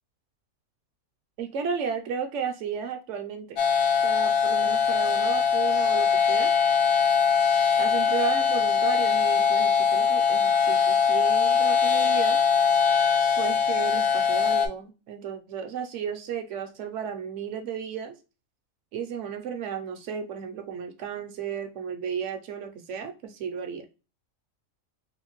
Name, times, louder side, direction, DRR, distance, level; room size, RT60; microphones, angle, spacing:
voice 1, 1.4-3.6 4.0-6.5 7.8-12.4 13.4-18.1 18.9-23.9, right 7 dB, 65° right, 6 dB, 0.9 m, -33 dB
sound 1, 3.6-14.7, left 6 dB, 80° left, 1.1 m, -22 dB
3.5 x 2.5 x 2.9 m, 0.30 s
omnidirectional pair, 1.5 m